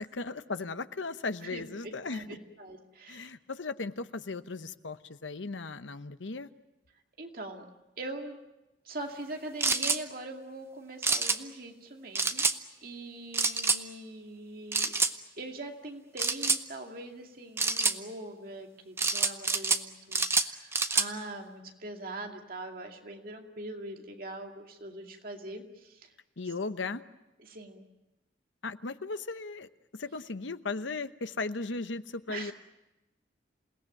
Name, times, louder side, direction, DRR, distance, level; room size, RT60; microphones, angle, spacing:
voice 1, 0.0-2.2 3.1-6.5 26.4-27.0 28.6-32.5, left 3 dB, 85° left, 11 dB, 1.0 m, -37 dB
voice 2, 1.5-3.3 7.2-7.6 8.0-8.4 8.8-12.5 12.8-14.9 15.4-26.1 27.4-27.9 32.3-32.5, right 2 dB, 50° right, 3 dB, 2.4 m, -42 dB
sound 1, 9.6-10.0 11.0-11.4 12.2-12.6 13.3-13.8 14.7-15.1 16.2-16.6 17.6-18.0 19.0-19.8 20.1-21.1, right 4 dB, 15° right, 0.8 m, -27 dB
28.0 x 18.5 x 9.0 m, 0.99 s
head